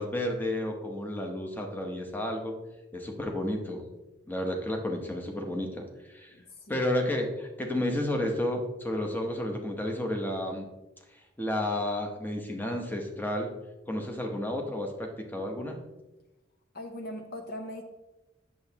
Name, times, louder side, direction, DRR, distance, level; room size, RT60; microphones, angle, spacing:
voice 1, 0.0-2.5 2.9-3.9 4.3-6.3 6.7-10.7 11.4-13.5 13.9-15.8, left 1 dB, 10° left, 2 dB, 0.9 m, -31 dB
voice 2, 6.3-6.8 16.7-17.8, left 1 dB, 50° left, 5 dB, 0.7 m, -40 dB
8.6 x 6.9 x 2.9 m, 1.0 s
head